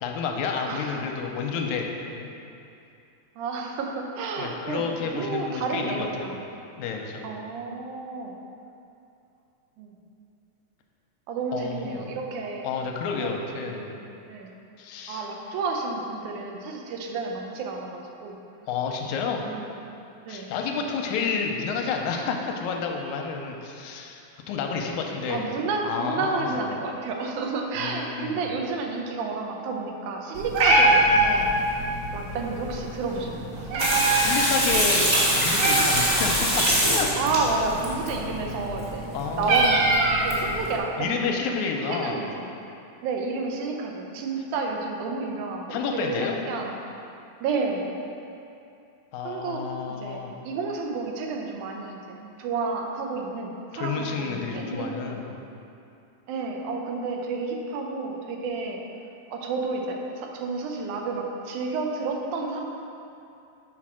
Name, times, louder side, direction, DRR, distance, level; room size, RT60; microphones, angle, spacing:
voice 1, 0.0-1.9 2.1-2.3 4.4-6.3 6.8-7.3 11.5-12.1 12.6-13.9 14.8-15.3 18.7-19.5 20.3-25.5 25.8-26.6 27.8-28.4 34.1-37.2 39.1-39.8 41.0-42.2 45.7-46.4 49.1-50.3 53.7-55.3, left 5 dB, 85° left, 2 dB, 2.0 m, -30 dB
voice 2, 0.7-1.1 3.4-4.8 5.1-6.4 7.2-8.3 9.8-9.9 11.3-12.7 13.1-13.3 13.7-14.5 15.1-18.4 19.4-19.8 20.3-20.5 25.3-31.5 32.1-33.4 33.7-34.2 37.2-39.1 39.4-39.9 40.2-41.4 41.9-42.5 43.0-46.8 47.4-47.9 49.2-49.6 50.0-55.2 56.3-58.8 59.3-62.6, right 3 dB, 85° right, 1 dB, 2.2 m, -31 dB
Meow, 30.3-40.8, right 1 dB, 65° right, 1.5 m, -25 dB
Water tap faucet / Sink (filling or washing), 33.8-38.1 39.5-39.6 39.9-40.0 40.3-40.4, equal, 35° right, 0.8 m, -23 dB
6.3 x 4.3 x 6.1 m, 2.6 s
omnidirectional pair, 3.4 m